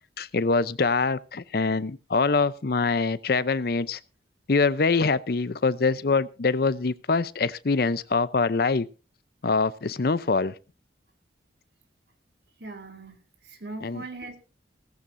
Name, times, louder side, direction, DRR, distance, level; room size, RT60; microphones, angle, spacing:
voice 1, 0.2-4.0 4.5-8.9 9.4-10.5 13.8-14.0, left 4 dB, 55° left, 0.6 m, -24 dB
voice 2, 12.6-14.4, right 2 dB, 65° right, 2.5 m, -40 dB
17.0 x 14.5 x 2.6 m
head